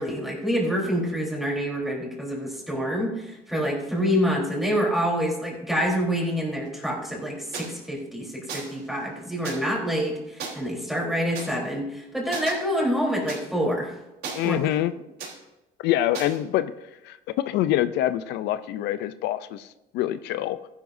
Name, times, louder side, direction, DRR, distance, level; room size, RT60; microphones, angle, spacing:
voice 1, 0.0-13.9 14.4-14.6, equal, ahead, -3 dB, 3.7 m, -27 dB
sound 1, 7.5-7.7 8.5-8.8 9.4-9.6 10.4-10.5 11.3-11.5 12.3-12.5 13.3-13.4 14.2-14.8 15.2-15.3 16.1-16.4, right 5 dB, 70° right, 3.5 m, -35 dB
voice 2, 14.3-14.9 15.8-16.7 17.0-19.7 19.9-20.6, left 13 dB, 85° left, 13 dB, 0.5 m, -25 dB
15.0 x 11.0 x 2.7 m, 0.98 s
cardioid pair, 110°, 17 cm